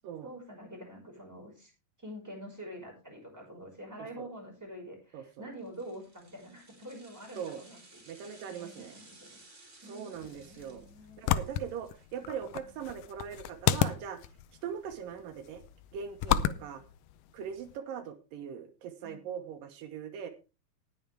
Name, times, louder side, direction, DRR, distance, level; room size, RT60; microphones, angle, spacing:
voice 1, 0.2-1.7 2.0-9.4 9.8-11.2 12.2-12.6 19.0-19.3, equal, 5° right, 0 dB, 5.2 m, -47 dB
voice 2, 5.1-5.5 7.4-7.6 8.1-9.0 9.8-10.9 11.2-14.2 14.6-15.6 15.9-16.8 17.3-20.3, right 7 dB, 80° right, 8 dB, 2.8 m, -41 dB
sound 1, 5.6-12.9 13.2-13.3, right 2 dB, 20° right, 2.7 m, -58 dB
sound 2, 10.1-17.8, left 11 dB, 80° left, 2.2 m, -33 dB
19.0 x 7.1 x 3.4 m, 0.30 s
omnidirectional pair, 3.9 m